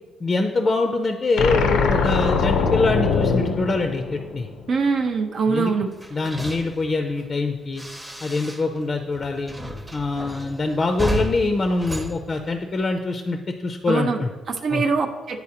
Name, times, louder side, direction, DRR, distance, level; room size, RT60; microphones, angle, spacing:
voice 1, 0.2-4.5 5.5-5.7 6.1-7.8 8.2-9.5 9.9-14.3 14.7-14.8, left 3 dB, 35° left, 5 dB, 0.4 m, -24 dB
sound 1, 1.4-4.7, left 5 dB, 90° left, 0.5 m, -22 dB
voice 2, 4.7-5.9 13.9-14.2 14.5-15.4, right 4 dB, 55° right, 4 dB, 0.4 m, -23 dB
sound 2, 5.9-8.9 9.1-13.0, equal, 5° right, 0.7 m, -33 dB
9.6 x 4.0 x 2.9 m, 1.3 s
cardioid pair, 90°, 0 cm